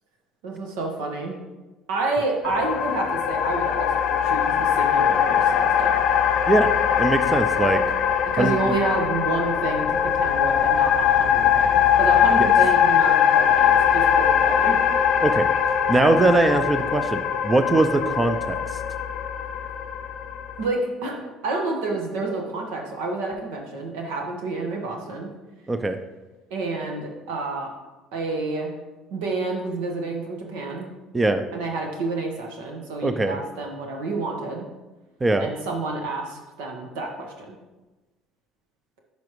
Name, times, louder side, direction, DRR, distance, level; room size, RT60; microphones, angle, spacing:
voice 1, 0.4-1.3 1.9-5.9 8.3-14.8 20.6-25.3 26.5-27.7 28.1-28.7 29.1-30.9 31.5-34.7 35.4-37.5, right 3 dB, 85° right, 1 dB, 1.4 m, -29 dB
sound 1, 2.4-20.7, left 8 dB, 60° left, 0.5 m, -21 dB
voice 2, 7.0-7.8 8.4-8.7 12.4-12.5 15.2-15.5 15.9-18.6 25.7-26.0 31.1-31.4 33.0-33.4 35.2-35.5, right 2 dB, 20° right, 8 dB, 0.5 m, -21 dB
10.5 x 5.2 x 3.1 m, 1.1 s
supercardioid pair, 85°, 0 cm